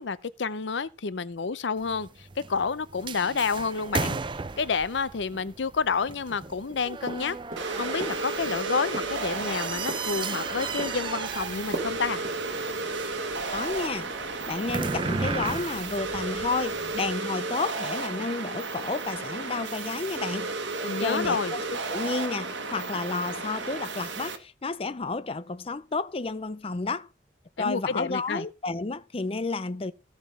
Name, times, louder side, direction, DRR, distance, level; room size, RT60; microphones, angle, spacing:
voice 1, 0.0-4.2 4.6-7.4 7.8-12.2 20.8-21.5 27.6-28.4, left 5 dB, 75° left, 0.6 m, -29 dB
sound 1, 1.8-17.2, right 4 dB, 25° right, 0.5 m, -36 dB
sound 2, 7.1-7.8 8.0-8.6 8.9-10.5 10.8-11.4 11.7-12.0 12.2-12.4, right 1 dB, 45° right, 2.8 m, -37 dB
sound 3, 7.6-24.4, right 3 dB, 80° right, 1.5 m, -33 dB
voice 2, 13.5-14.1 14.5-20.6 21.0-27.1 27.6-29.9, left 3 dB, 30° left, 0.5 m, -31 dB
15.0 x 5.1 x 5.3 m
head